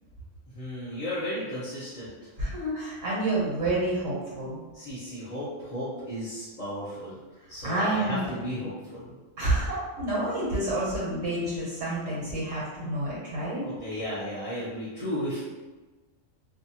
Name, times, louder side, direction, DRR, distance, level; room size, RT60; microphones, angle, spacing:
voice 1, 0.5-2.3 4.7-7.1 7.5-9.1 13.6-15.4, equal, 40° left, -11 dB, 0.5 m, -34 dB
voice 2, 2.4-4.6 7.6-8.2 9.4-13.7, right 1 dB, 70° right, -6 dB, 1.1 m, -29 dB
2.7 x 2.3 x 2.7 m, 1.2 s
omnidirectional pair, 1.4 m